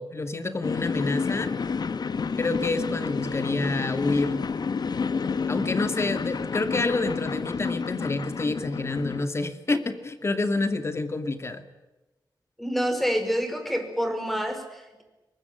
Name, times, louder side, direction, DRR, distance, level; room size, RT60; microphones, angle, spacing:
voice 1, 0.0-1.5 2.4-4.4 5.5-11.6, left 3 dB, 35° left, 9 dB, 2.3 m, -28 dB
sound 1, 0.6-9.2, left 5 dB, 65° left, 1.3 m, -29 dB
voice 2, 12.6-15.0, equal, ahead, 6 dB, 5.2 m, -27 dB
23.5 x 21.5 x 9.9 m, 1.1 s
wide cardioid pair, 120°, 8 cm